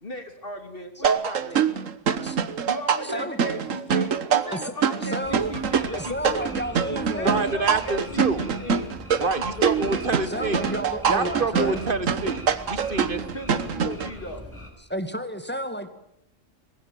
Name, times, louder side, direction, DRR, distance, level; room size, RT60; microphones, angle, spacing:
voice 1, 0.0-1.6 2.6-6.5 6.9-8.9 9.2-9.8 13.3-14.4, left 1 dB, 45° left, 7 dB, 3.2 m, -37 dB
sound 1, 1.0-14.1, right 7 dB, 90° right, 1.5 m, -25 dB
voice 2, 3.0-3.4 4.5-4.7 5.0-5.5 5.9-7.6 10.2-11.8 14.9-15.9, equal, 10° left, 9 dB, 2.1 m, -32 dB
sound 2, 5.2-14.7, equal, 10° right, 5.7 m, -42 dB
voice 3, 7.2-8.4 9.2-10.7 11.1-13.2, right 3 dB, 45° right, 13 dB, 1.8 m, -27 dB
23.5 x 20.5 x 9.2 m, 0.77 s
omnidirectional pair, 1.3 m